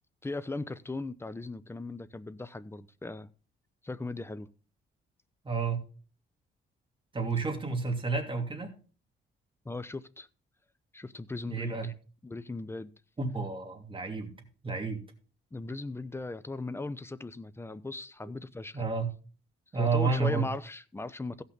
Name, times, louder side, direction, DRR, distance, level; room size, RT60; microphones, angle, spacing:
voice 1, 0.2-3.3 3.8-4.5 9.6-10.3 10.9-11.9 12.2-12.9 15.5-18.8 19.8-21.4, left 2 dB, 10° left, 0.7 m, -38 dB
voice 2, 5.4-5.8 7.1-8.7 11.5-11.9 13.2-14.3 14.6-15.0 18.7-19.1 19.7-20.5, right 4 dB, 25° right, 2.8 m, -30 dB
16.0 x 5.8 x 4.0 m
cardioid pair, 90°, 20 cm